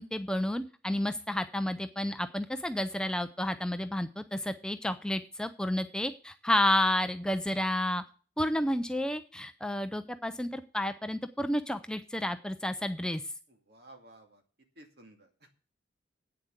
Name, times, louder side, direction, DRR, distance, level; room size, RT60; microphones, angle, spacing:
voice 1, 0.0-8.0 8.4-13.2, left 1 dB, 5° left, 9 dB, 0.5 m, -31 dB
voice 2, 13.5-14.4 14.7-15.5, right 1 dB, 60° right, 3 dB, 2.5 m, -55 dB
8.8 x 7.3 x 8.1 m, 0.38 s
head